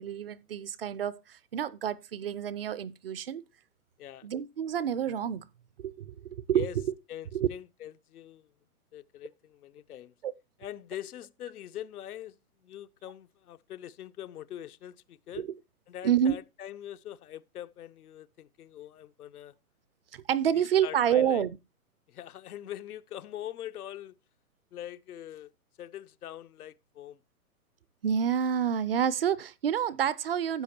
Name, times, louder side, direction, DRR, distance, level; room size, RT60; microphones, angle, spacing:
voice 1, 0.0-3.4 4.2-5.4 5.8-6.7 7.3-7.5 10.2-10.3 15.4-15.5 16.0-16.4 20.1-21.6 28.0-30.6, right 9 dB, 45° right, 0.4 m, -28 dB
voice 2, 7.1-8.5 8.9-10.1 10.6-12.3 12.6-15.5 15.9-19.6 20.5-21.5 22.1-24.2 24.7-25.5 25.8-27.2, left 11 dB, 75° left, 0.7 m, -43 dB
12.5 x 8.2 x 2.7 m
hypercardioid pair, 140°, 45 cm